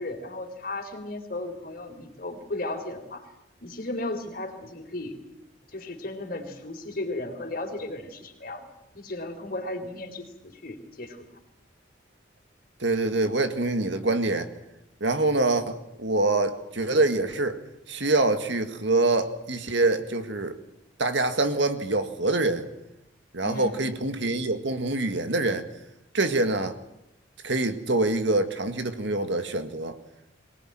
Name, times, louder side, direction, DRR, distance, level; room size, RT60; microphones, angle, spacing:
voice 1, 0.0-3.2 3.6-5.2 5.7-8.7 8.9-11.3 23.4-23.8, left 2 dB, 45° left, 5 dB, 3.9 m, -35 dB
voice 2, 12.8-14.5 15.0-17.6 17.9-20.6 21.0-22.7 23.3-25.7 26.1-26.8 27.4-30.0, right 2 dB, 65° right, 8 dB, 2.0 m, -25 dB
23.5 x 19.0 x 9.1 m, 0.85 s
head